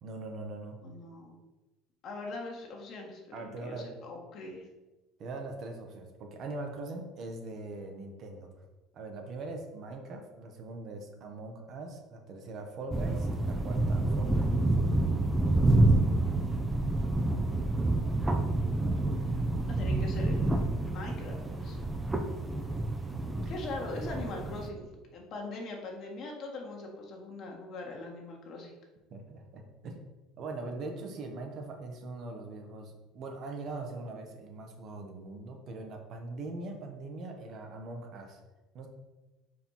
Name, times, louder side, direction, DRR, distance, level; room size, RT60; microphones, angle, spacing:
voice 1, 0.0-0.8 3.3-3.9 5.2-8.5 8.9-14.5 29.1-30.0 30.4-38.4 38.7-38.9, right 2 dB, 50° right, 3 dB, 1.1 m, -41 dB
voice 2, 0.8-1.4 2.0-4.7 19.7-21.8 23.5-28.7, left 2 dB, 50° left, 1 dB, 1.6 m, -41 dB
sound 1, 12.9-24.7, right 2 dB, 15° right, 0.7 m, -28 dB
4.8 x 4.4 x 5.6 m, 1.1 s
supercardioid pair, 115°, 0 cm